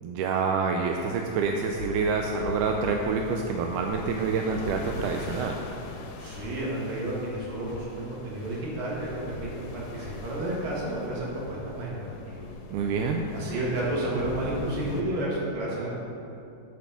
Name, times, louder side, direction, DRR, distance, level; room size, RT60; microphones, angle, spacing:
voice 1, 0.0-5.6 12.7-13.3, right 5 dB, 85° right, 2 dB, 2.1 m, -27 dB
sound 1, 0.8-15.0, left 3 dB, 75° left, 1.5 m, -41 dB
voice 2, 6.2-12.5 13.3-15.9, right 1 dB, 65° right, -5 dB, 3.2 m, -31 dB
8.3 x 6.1 x 6.9 m, 2.7 s
omnidirectional pair, 3.6 m